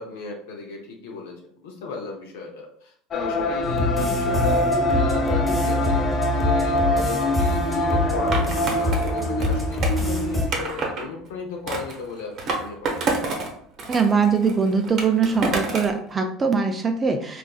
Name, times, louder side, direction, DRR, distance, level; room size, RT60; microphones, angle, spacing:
voice 1, 0.0-1.3 1.6-13.0, left 4 dB, 85° left, 0 dB, 0.6 m, -35 dB
sound 1, 3.1-10.6, left 1 dB, 40° left, 0.4 m, -26 dB
sound 2, 3.6-10.5, left 1 dB, 20° left, 1.1 m, -24 dB
Skateboard, 8.3-11.0 11.7-13.5 13.8-16.0, right 3 dB, 50° right, 0.7 m, -28 dB
voice 2, 13.9-17.4, right 5 dB, 30° right, 5 dB, 0.4 m, -22 dB
3.5 x 2.4 x 2.3 m, 0.62 s
supercardioid pair, 95°, 0 cm